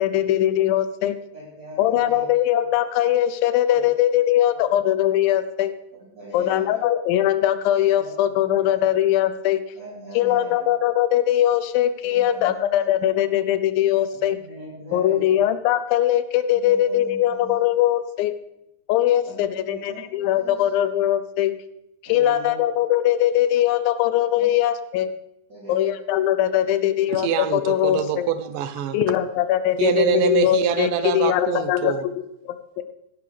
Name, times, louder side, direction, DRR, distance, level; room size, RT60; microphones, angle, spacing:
voice 1, 0.0-1.2 1.8-5.7 6.3-9.6 10.2-14.4 14.9-18.3 18.9-21.5 22.1-25.1 25.7-28.3 28.9-32.8, left 12 dB, 90° left, 11 dB, 2.5 m, -21 dB
voice 2, 1.3-2.3 3.7-3.9 4.5-4.8 5.9-6.8 7.9-8.8 9.7-10.8 12.0-13.0 14.1-15.4 16.5-17.6 19.2-20.7 22.0-22.6 24.3-24.5 25.5-25.9 26.6-27.0 27.8-27.9 29.2-29.3, right 1 dB, 25° right, -7 dB, 3.3 m, -41 dB
voice 3, 27.2-29.0 29.8-32.0, right 8 dB, 75° right, 11 dB, 2.4 m, -24 dB
17.5 x 11.0 x 3.4 m, 0.82 s
omnidirectional pair, 4.0 m